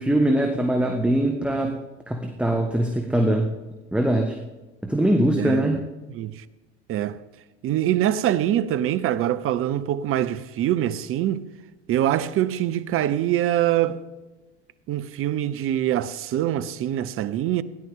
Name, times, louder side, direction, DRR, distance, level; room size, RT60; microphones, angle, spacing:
voice 1, 0.0-1.7 2.1-3.5 3.9-4.4 4.8-5.8, right 1 dB, 5° right, 1.3 m, -22 dB
voice 2, 5.4-5.7 6.1-6.4 6.9-7.2 7.6-11.5 11.9-14.0 14.9-17.6, right 12 dB, 40° right, 0.7 m, -24 dB
17.0 x 11.0 x 3.7 m
hypercardioid pair, 80°, 34 cm